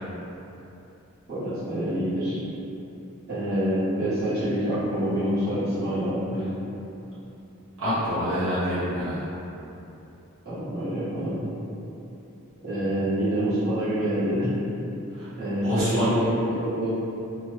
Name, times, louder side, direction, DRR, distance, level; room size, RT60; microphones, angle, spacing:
voice 1, 1.3-2.4 3.3-6.4 10.4-11.4 12.6-14.5 15.3-17.0, equal, 50° right, -14 dB, 1.3 m, -26 dB
voice 2, 7.8-9.3 15.1-15.3 15.6-16.1, equal, 80° right, -13 dB, 1.0 m, -26 dB
3.0 x 2.1 x 3.1 m, 2.9 s
head